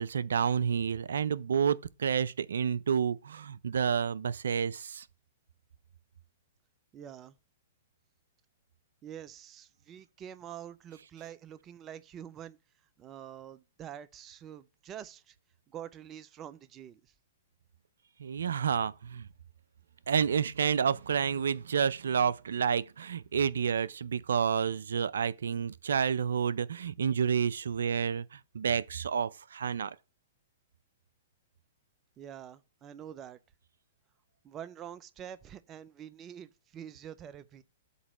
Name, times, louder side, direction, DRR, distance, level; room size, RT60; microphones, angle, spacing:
voice 1, 0.0-5.1 18.2-19.3 20.1-30.0, right 7 dB, 80° right, 0.5 m, -29 dB
voice 2, 6.9-7.4 9.0-12.6 13.0-15.4 15.7-17.1 32.2-33.4 34.4-37.6, right 10 dB, 25° right, 0.6 m, -46 dB
8.1 x 3.0 x 6.0 m
hypercardioid pair, 120°, 0 cm